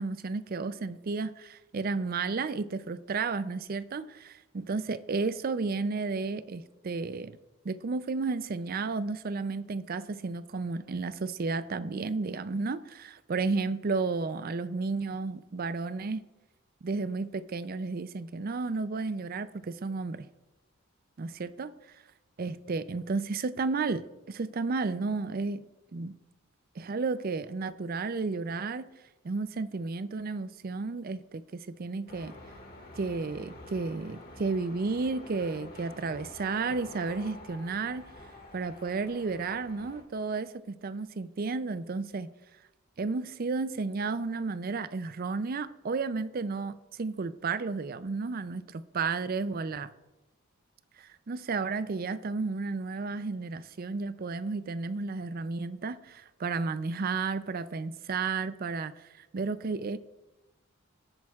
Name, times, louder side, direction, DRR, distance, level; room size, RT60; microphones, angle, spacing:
voice 1, 0.0-7.4 7.6-16.2 16.8-20.3 21.2-21.7 22.4-25.6 25.9-26.2 26.8-28.8 29.2-32.3 33.0-38.0 38.5-42.3 43.0-49.9 51.0-60.0, right 4 dB, 45° right, 14 dB, 0.4 m, -32 dB
sound 1, 32.1-40.0, left 1 dB, 45° left, 1.9 m, -48 dB
18.0 x 8.7 x 2.4 m, 1.0 s
head